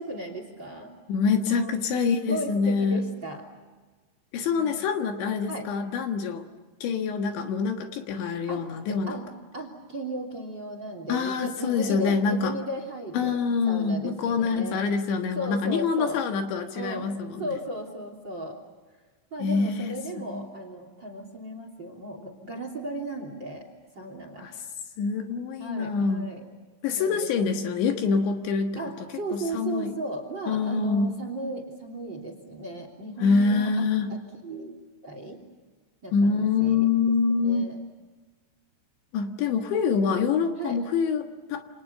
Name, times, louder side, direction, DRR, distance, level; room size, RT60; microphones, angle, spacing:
voice 1, 0.0-0.9 1.4-3.4 4.5-4.7 5.5-5.7 8.5-9.3 9.5-13.4 13.7-14.8 15.3-16.2 16.7-17.1 17.4-18.6 19.3-23.7 23.9-24.5 25.6-26.4 26.9-27.5 28.8-33.8 34.1-34.7 35.0-35.4 36.0-36.9 37.4-37.8 40.6-40.8, right 1 dB, 25° right, 5 dB, 3.1 m, -36 dB
voice 2, 1.1-3.0 4.3-6.5 6.8-9.2 11.1-12.5 13.1-17.5 19.4-20.5 24.4-24.6 25.0-26.3 26.8-29.1 29.3-29.9 30.5-31.2 33.2-34.2 36.1-37.7 39.1-41.6, left 5 dB, 70° left, 5 dB, 3.7 m, -26 dB
28.5 x 27.0 x 6.9 m, 1.3 s
omnidirectional pair, 5.7 m